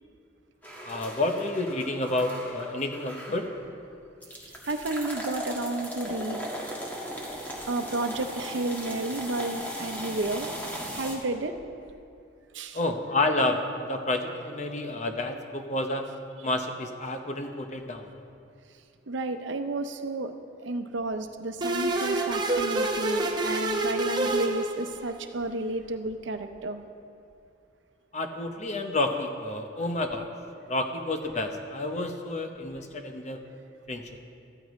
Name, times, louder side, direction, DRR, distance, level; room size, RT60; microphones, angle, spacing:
sound 1, 0.6-3.7 4.2-11.2, equal, 10° left, 1.7 m, -38 dB
voice 1, 0.8-3.5 12.7-13.6 13.9-16.1 16.4-18.1 28.1-30.3 30.7-33.4 33.9-34.1, left 2 dB, 40° left, 5 dB, 0.8 m, -29 dB
voice 2, 4.3-6.5 7.7-10.6 10.9-11.6 12.5-12.8 19.1-20.3 20.6-26.8, right 2 dB, 85° right, 7 dB, 0.7 m, -32 dB
sound 2, 21.6-25.2, right 2 dB, 25° right, 0.8 m, -27 dB
14.0 x 14.0 x 3.1 m, 2.5 s
head